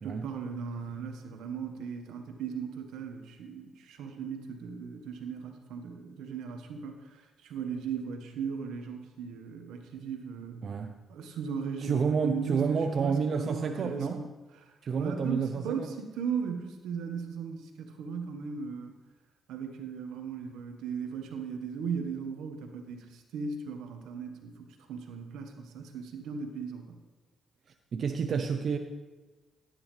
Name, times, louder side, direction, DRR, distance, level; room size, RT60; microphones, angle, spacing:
voice 1, 0.0-10.6 11.1-14.3 14.6-18.9 19.5-27.0, right 6 dB, 85° right, 5 dB, 1.4 m, -37 dB
voice 2, 10.6-11.0 11.8-14.2 14.8-15.9 27.9-28.8, right 5 dB, 60° right, 6 dB, 0.8 m, -29 dB
16.0 x 9.7 x 3.3 m, 1.2 s
supercardioid pair, 65°, 0 cm